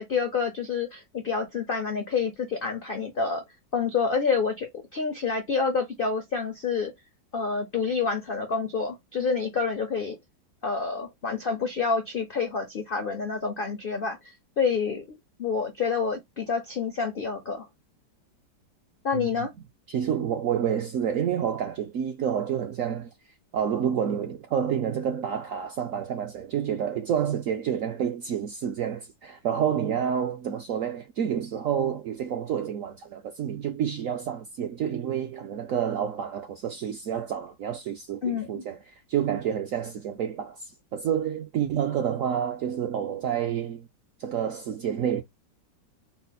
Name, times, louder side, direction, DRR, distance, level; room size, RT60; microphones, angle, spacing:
voice 1, 0.0-3.4 3.7-6.9 7.3-10.2 10.6-17.7 19.0-19.5 38.2-38.6, left 5 dB, 65° left, 0.5 m, -28 dB
voice 2, 19.1-19.5 19.9-23.1 23.5-38.8 39.1-43.9 44.2-45.2, right 8 dB, 65° right, 0.8 m, -29 dB
4.0 x 2.0 x 4.0 m
omnidirectional pair, 2.0 m